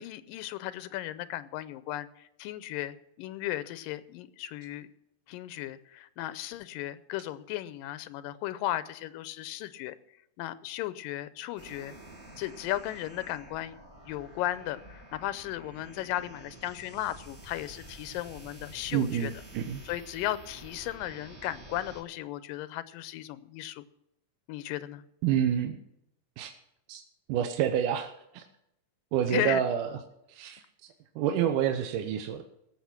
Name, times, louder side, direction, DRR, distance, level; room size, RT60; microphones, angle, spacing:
voice 1, 0.0-4.9 5.3-10.0 10.4-11.9 12.4-13.8 14.1-19.3 19.9-23.8 24.5-25.0 29.3-29.6, left 14 dB, 90° left, 14 dB, 2.4 m, -35 dB
sound 1, 11.6-22.0, right 1 dB, 30° right, 1.3 m, -50 dB
voice 2, 18.9-19.8 25.2-25.8 26.4-26.5 26.9-27.0 27.3-28.4 29.1-29.9 30.3-30.6 31.2-32.4, right 9 dB, 75° right, 6 dB, 2.3 m, -28 dB
18.0 x 7.3 x 5.9 m, 0.80 s
omnidirectional pair, 3.9 m